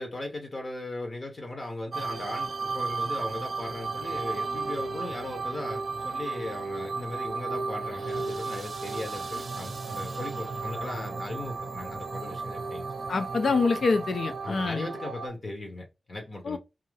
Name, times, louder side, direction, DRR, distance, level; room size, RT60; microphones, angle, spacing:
voice 1, 0.0-13.0 14.4-16.6, left 2 dB, 35° left, 0.7 m, -38 dB
sound 1, 1.9-15.3, right 4 dB, 50° right, 0.6 m, -34 dB
voice 2, 13.1-14.9 16.4-16.6, left 4 dB, 70° left, 0.3 m, -26 dB
2.6 x 2.4 x 3.1 m
wide cardioid pair, 170°, 0 cm